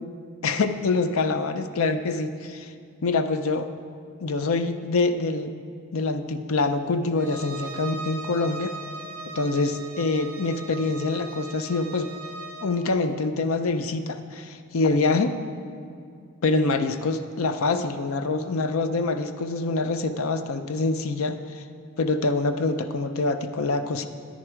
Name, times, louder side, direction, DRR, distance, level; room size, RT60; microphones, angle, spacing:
voice 1, 0.4-2.7 3.0-3.6 4.2-5.5 5.9-8.7 9.3-12.1 12.6-15.4 16.4-21.4 22.0-24.1, left 3 dB, 70° left, 9 dB, 0.5 m, -25 dB
Bowed string instrument, 7.2-12.8, right 2 dB, 40° right, 0.9 m, -39 dB
9.7 x 9.6 x 4.6 m, 2.3 s
head